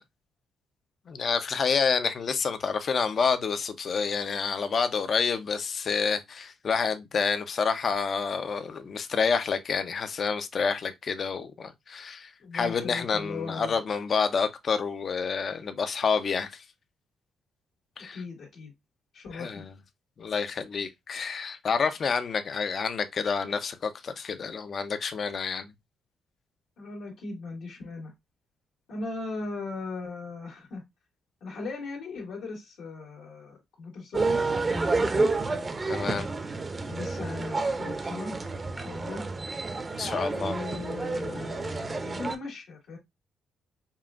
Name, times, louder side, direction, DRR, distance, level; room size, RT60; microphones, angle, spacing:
voice 1, 1.1-16.5 18.0-18.2 19.3-19.6 20.2-25.7 35.9-36.3 40.0-40.5, left 5 dB, 50° left, 0.6 m, -28 dB
voice 2, 12.4-13.8 18.1-18.7 19.1-19.6 26.8-28.1 28.9-30.8 31.4-35.3 36.9-38.4 38.8-39.2 40.4-43.0, left 3 dB, 75° left, 1.8 m, -38 dB
sound 1, 34.1-42.4, right 3 dB, 30° right, 0.6 m, -29 dB
5.5 x 2.5 x 2.4 m
cardioid pair, 90°, 0 cm